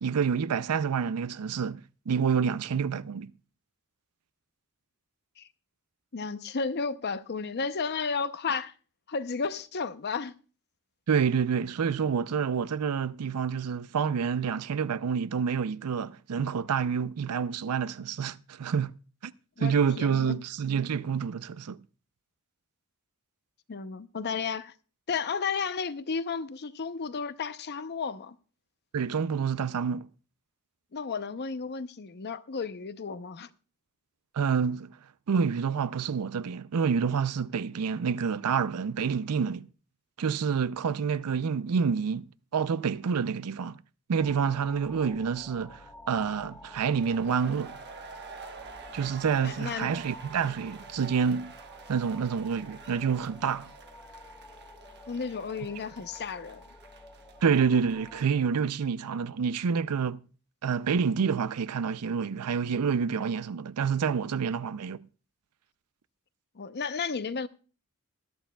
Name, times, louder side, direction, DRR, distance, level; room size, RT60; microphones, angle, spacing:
voice 1, 0.0-1.8 2.1-3.3 11.1-18.9 19.2-19.3 19.6-21.8 28.9-30.1 34.3-35.0 35.3-39.7 40.2-42.3 42.5-43.8 44.1-47.8 48.9-51.5 51.9-53.7 57.4-60.2 60.6-65.0, right 6 dB, 90° right, 0.5 m, -28 dB
voice 2, 6.1-8.7 9.1-10.4 19.6-20.4 23.7-24.7 25.1-28.4 30.9-33.5 49.4-49.9 55.1-56.6 66.6-67.5, left 5 dB, 50° left, 0.6 m, -33 dB
sound 1, 44.2-58.2, left 1 dB, 10° left, 1.2 m, -50 dB
sound 2, 46.8-58.4, right 5 dB, 50° right, 1.2 m, -48 dB
20.5 x 11.5 x 2.3 m
head